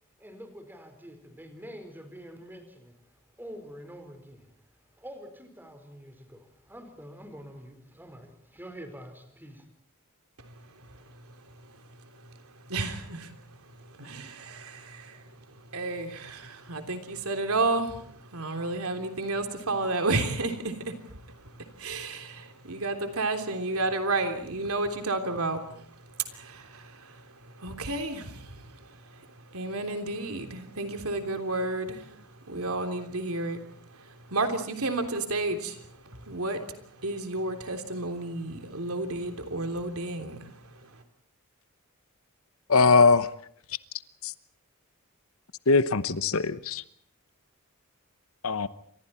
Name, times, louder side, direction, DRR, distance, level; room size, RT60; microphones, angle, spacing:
voice 1, 0.2-9.7, equal, 10° right, 4.5 m, -46 dB
voice 2, 10.4-41.0, right 2 dB, 70° right, 3.3 m, -32 dB
voice 3, 42.7-43.3 44.2-44.3 45.7-46.8 48.4-48.7, left 4 dB, 65° left, 1.0 m, -21 dB
29.5 x 26.0 x 4.4 m
head